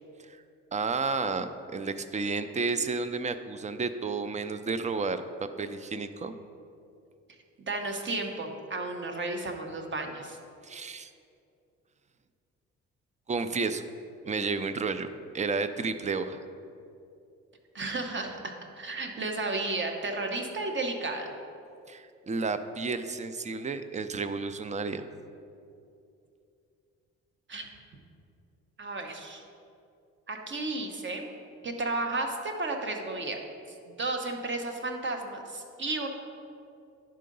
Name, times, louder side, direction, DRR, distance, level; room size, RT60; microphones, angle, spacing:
voice 1, 0.7-5.2 5.6-6.3 10.6-11.1 13.3-13.8 14.3-15.1 15.3-16.4 21.9-25.1, right 4 dB, 25° right, 11 dB, 0.4 m, -31 dB
voice 2, 7.7-10.4 17.7-21.3 27.5-27.7 28.8-29.4 30.3-31.2 31.6-33.4 33.9-36.1, right 2 dB, 40° right, 3 dB, 1.0 m, -33 dB
10.5 x 3.8 x 5.3 m, 2.5 s
cardioid pair, 90°, 30 cm